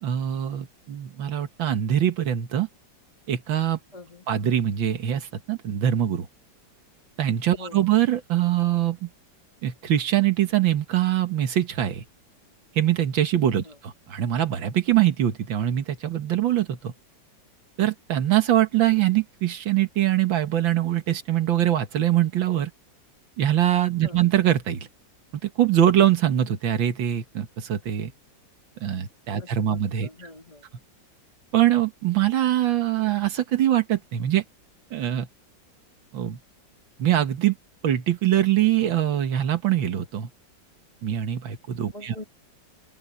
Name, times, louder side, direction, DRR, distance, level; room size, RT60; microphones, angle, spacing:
voice 1, 0.0-2.7 3.3-3.8 4.3-6.3 7.2-9.1 9.6-12.0 12.8-16.9 17.8-22.7 23.4-24.9 25.4-28.1 28.8-30.3 31.5-34.4 34.9-35.3 36.1-36.4 37.0-37.6 37.8-40.3 41.0-42.2, right 11 dB, 90° right, 2.1 m, -23 dB
voice 2, 3.9-4.2 7.6-7.9 13.6-13.8 24.0-24.3 29.3-30.6 41.9-42.2, left 2 dB, 20° left, 3.5 m, -44 dB
open air
omnidirectional pair, 2.0 m